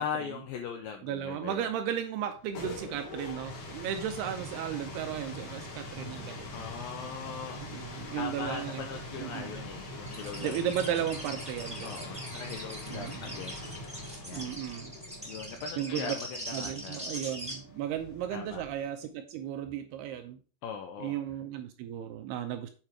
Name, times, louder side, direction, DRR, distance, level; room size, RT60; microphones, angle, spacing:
voice 1, 0.0-1.7 6.5-10.6 10.9-11.1 11.8-13.7 14.2-14.5 15.3-17.0 18.3-18.6 20.6-21.2, left 7 dB, 85° left, 6 dB, 2.0 m, -40 dB
voice 2, 1.0-6.5 7.5-8.9 9.2-9.5 10.4-12.0 12.9-13.4 14.3-15.0 15.8-16.2 16.5-20.4 21.0-22.7, right 10 dB, 80° right, 7 dB, 2.4 m, -35 dB
sound 1, 2.3-19.0, left 1 dB, 65° left, 4.2 m, -43 dB
sound 2, 10.0-17.5, equal, 5° right, 1.1 m, -42 dB
9.0 x 4.8 x 4.6 m, 0.38 s
omnidirectional pair, 5.1 m